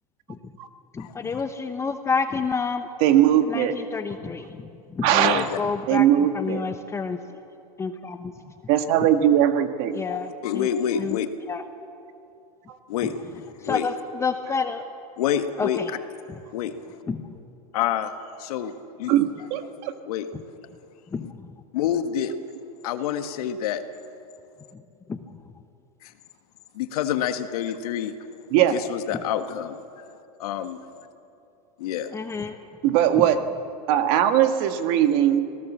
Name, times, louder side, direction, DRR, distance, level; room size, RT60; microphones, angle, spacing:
voice 1, 0.9-2.9 3.5-6.1 6.3-7.2 7.8-8.3 9.9-10.7 11.0-11.2 11.5-11.6 13.0-13.1 13.6-14.8 15.6-15.9 17.1-17.3 21.1-21.3 24.7-24.8 25.1-25.2 32.1-32.6 33.2-33.3, left 5 dB, 15° left, 8 dB, 0.8 m, -29 dB
voice 2, 3.0-3.7 5.0-5.5 5.9-6.6 8.7-10.0 19.1-19.9 28.5-28.7 32.8-33.4 33.9-35.4, right 11 dB, 50° right, 8 dB, 1.7 m, -20 dB
voice 3, 5.2-5.6 10.1-11.3 12.9-13.1 13.6-13.9 15.2-15.8 16.5-16.7 17.7-18.1 18.4-19.1 20.1-20.3 21.2-21.3 21.7-22.3 22.8-23.8 26.0-26.1 26.7-28.1 28.7-30.1 30.4-30.8 31.8-32.1, left 10 dB, 70° left, 8 dB, 1.6 m, -27 dB
26.0 x 18.0 x 7.3 m, 2.6 s
supercardioid pair, 130°, 20 cm